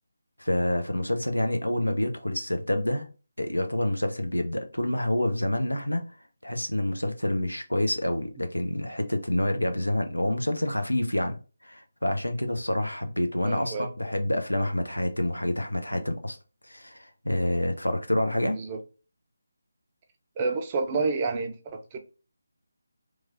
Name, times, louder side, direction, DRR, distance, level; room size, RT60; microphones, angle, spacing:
voice 1, 0.4-3.1 3.4-6.0 6.4-11.4 11.6-16.4 16.6-18.6, left 1 dB, 80° left, 0.7 m, -27 dB
voice 2, 13.4-13.9 18.5-18.8 20.4-22.0, right 4 dB, 20° right, 0.5 m, -29 dB
3.1 x 2.4 x 3.9 m
figure-of-eight pair, 155°, 0 cm